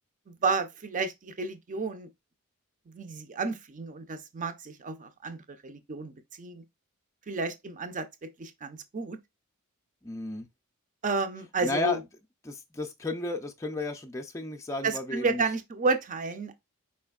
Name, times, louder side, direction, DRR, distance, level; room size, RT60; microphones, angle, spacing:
voice 1, 0.3-2.1 2.9-6.6 7.3-9.2 11.0-12.0 14.8-16.6, right 4 dB, 35° right, 0.6 m, -31 dB
voice 2, 10.0-10.5 11.6-12.0 12.4-15.4, left 2 dB, 15° left, 0.4 m, -33 dB
4.8 x 4.3 x 2.3 m
head